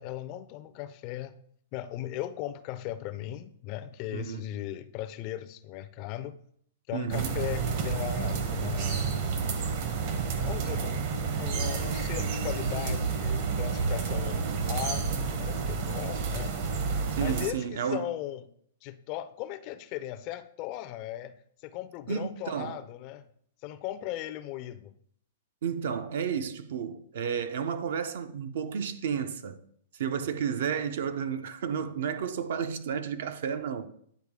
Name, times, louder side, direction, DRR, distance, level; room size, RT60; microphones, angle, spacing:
voice 1, 0.0-1.3 1.7-6.4 6.9-9.0 10.4-15.1 15.4-16.6 17.2-18.5 18.8-21.3 21.6-23.3 23.6-24.9, left 13 dB, 35° left, 0.4 m, -37 dB
voice 2, 4.1-4.4 6.9-7.4 17.1-18.1 22.1-22.8 25.6-29.6 29.9-33.9, right 7 dB, 65° right, 0.5 m, -32 dB
sound 1, 7.1-17.5, right 5 dB, 45° right, 0.9 m, -30 dB
9.5 x 3.9 x 3.6 m
hypercardioid pair, 155°, 0 cm